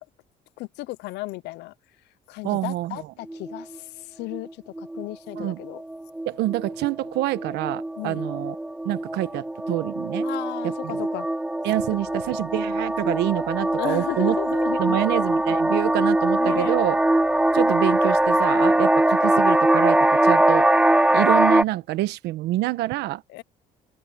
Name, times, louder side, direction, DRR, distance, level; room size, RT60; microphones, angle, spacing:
voice 1, 0.6-1.7 2.3-5.8 8.0-8.2 10.2-11.3 13.8-15.0 16.4-16.8 23.3-23.4, left 19 dB, 85° left, 0.8 m, -34 dB
voice 2, 2.4-3.1 5.4-5.6 6.3-8.5 8.8-10.3 10.6-11.1 11.6-14.4 14.8-17.0 17.5-20.7 21.1-23.2, right 16 dB, 85° right, 1.3 m, -26 dB
sound 1, 3.3-3.8 4.3-4.5 4.8-5.0 5.3-21.6, right 1 dB, 5° right, 0.7 m, -22 dB
sound 2, 11.8-18.7, right 13 dB, 70° right, 5.9 m, -54 dB
open air
cardioid pair, 110°, 17 cm